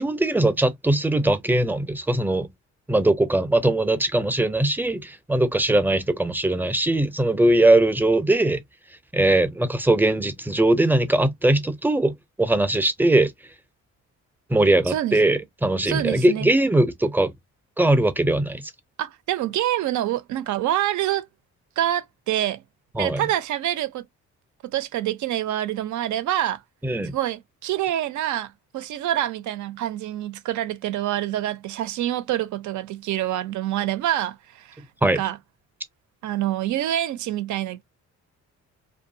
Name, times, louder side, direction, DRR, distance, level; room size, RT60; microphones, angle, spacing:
voice 1, 0.0-2.5 2.9-8.6 9.1-13.3 14.5-17.3 17.8-18.7 22.9-23.2 26.8-27.1 35.0-35.2, right 1 dB, 5° right, 0.5 m, -20 dB
voice 2, 14.9-15.2 15.9-16.5 19.0-21.3 21.8-22.6 23.0-24.0 24.7-26.6 27.1-34.8 35.2-35.4 36.2-37.8, right 12 dB, 70° right, 0.6 m, -26 dB
2.6 x 2.3 x 2.6 m
cardioid pair, 90°, 30 cm